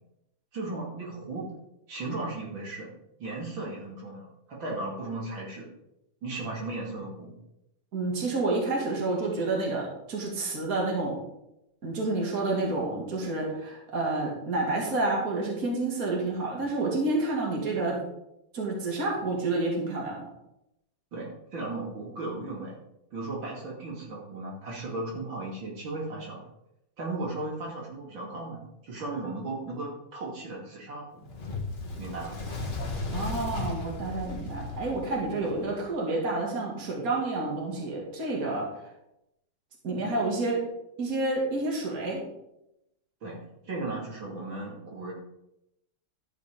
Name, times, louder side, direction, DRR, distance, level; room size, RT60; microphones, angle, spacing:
voice 1, 0.5-1.5 1.9-2.9 3.2-5.7 6.2-7.4 21.1-22.7 23.1-26.4 27.0-28.6 28.9-31.2 32.0-32.4 43.2-43.4 43.6-45.1, right 2 dB, 65° right, -3 dB, 3.1 m, -36 dB
voice 2, 7.9-11.2 11.8-18.0 18.5-20.3 33.1-38.7 39.8-40.6 41.0-42.2, right 2 dB, 45° right, -2 dB, 2.7 m, -29 dB
Fire, 31.2-35.8, left 2 dB, 25° left, 1.7 m, -35 dB
13.0 x 5.5 x 5.2 m, 0.85 s
omnidirectional pair, 2.3 m